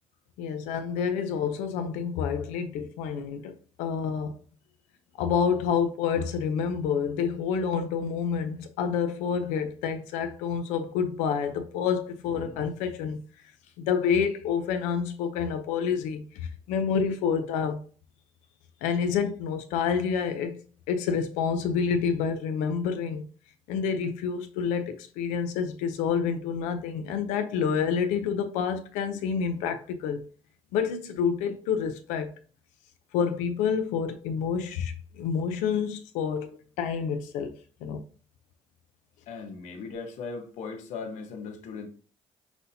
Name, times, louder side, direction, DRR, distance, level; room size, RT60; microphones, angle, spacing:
voice 1, 0.4-3.5 3.8-4.4 5.2-13.2 13.8-17.8 18.8-20.6 20.9-23.2 23.7-30.2 30.7-32.3 33.1-37.5 37.8-38.0, left 6 dB, 90° left, 0.6 m, -28 dB
voice 2, 39.3-41.9, left 4 dB, 70° left, 0.9 m, -38 dB
5.9 x 2.7 x 2.7 m
cardioid pair, 95°, 12 cm